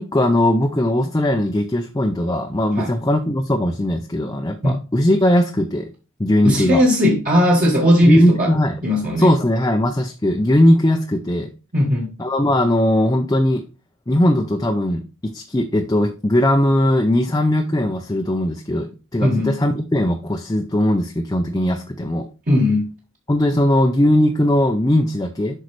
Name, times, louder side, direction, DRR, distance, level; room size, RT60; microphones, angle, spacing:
voice 1, 0.0-5.9 6.2-6.8 8.0-8.8 9.2-11.5 12.2-13.6 14.1-22.3 23.3-25.6, left 1 dB, 15° left, 4 dB, 0.5 m, -19 dB
voice 2, 6.4-8.5 8.8-9.3 11.7-12.1 19.2-19.6 22.5-22.9, equal, 40° right, -4 dB, 1.5 m, -17 dB
8.0 x 5.5 x 3.2 m, 0.34 s
head